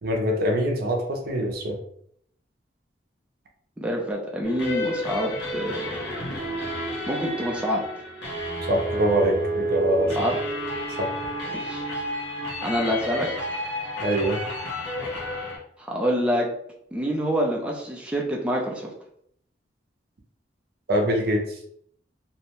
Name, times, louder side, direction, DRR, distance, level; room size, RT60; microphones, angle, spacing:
voice 1, 0.0-1.8 8.7-10.2 11.0-11.1 14.0-14.4 20.9-21.6, right 1 dB, 55° right, 1 dB, 0.5 m, -24 dB
voice 2, 3.8-6.0 7.1-7.8 10.1-10.3 11.5-11.9 12.6-13.3 15.8-16.5 16.9-18.9, equal, 5° right, -2 dB, 0.4 m, -26 dB
sound 1, 4.4-15.6, equal, 70° left, 0.9 m, -30 dB
2.7 x 2.1 x 2.9 m, 0.68 s
head